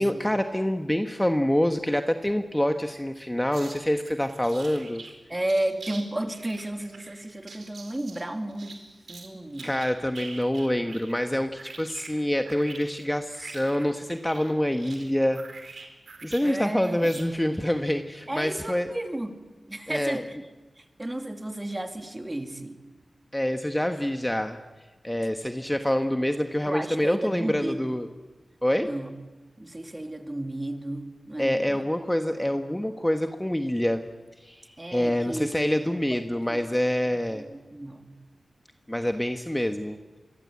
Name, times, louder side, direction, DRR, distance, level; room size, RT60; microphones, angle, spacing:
voice 1, 0.0-5.0 9.6-15.4 15.7-15.9 16.2-18.9 19.9-20.2 23.3-24.6 25.0-28.1 28.6-28.9 31.4-34.0 34.4-37.4 38.9-40.0, left 1 dB, 10° left, 6 dB, 1.3 m, -26 dB
sound 1, 3.5-5.1 5.4-6.0 6.3-9.3 9.5-11.3 11.6-16.6 16.8-17.2, right 4 dB, 80° right, 4.5 m, -45 dB
voice 2, 5.3-9.7 16.4-17.2 18.3-19.4 19.7-20.4 20.8-22.8 26.6-28.0 28.8-29.1 29.6-31.8 32.4-32.6 34.8-36.2 36.5-36.6 37.1-38.2, right 1 dB, 20° right, 6 dB, 2.6 m, -33 dB
26.5 x 24.5 x 8.5 m, 1.2 s
wide cardioid pair, 90°, 0 cm